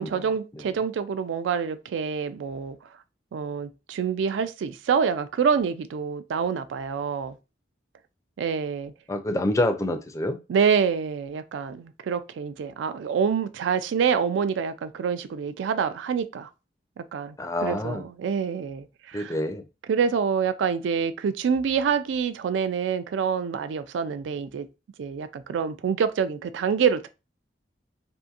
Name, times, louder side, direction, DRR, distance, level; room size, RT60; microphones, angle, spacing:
voice 1, 0.0-2.8 3.3-7.4 8.4-8.9 10.5-16.5 17.0-17.4 17.6-19.4 19.9-24.7 25.0-27.1, right 6 dB, 85° right, 0.3 m, -26 dB
voice 2, 9.1-10.4 17.4-18.1 19.1-19.6, left 1 dB, 15° left, 0.4 m, -27 dB
2.7 x 2.5 x 2.4 m
head